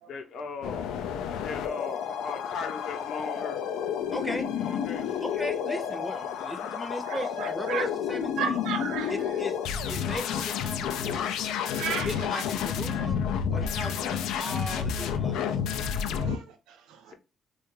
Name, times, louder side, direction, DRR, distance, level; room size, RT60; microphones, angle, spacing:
voice 1, 0.1-0.9 1.4-3.6 4.5-5.2 17.1-17.2, left 5 dB, 70° left, 0.8 m, -38 dB
sound 1, 0.6-16.4, left 7 dB, 90° left, 0.3 m, -30 dB
voice 2, 4.1-4.5 5.2-8.6 9.1-9.6 9.9-11.3 12.0-13.2 13.5-15.4, equal, 10° left, 0.6 m, -37 dB
voice 3, 7.0-7.9 8.4-9.4 11.7-12.4 16.1-17.1, right 7 dB, 90° right, 0.5 m, -35 dB
3.3 x 2.3 x 3.1 m
cardioid pair, 90°, 0 cm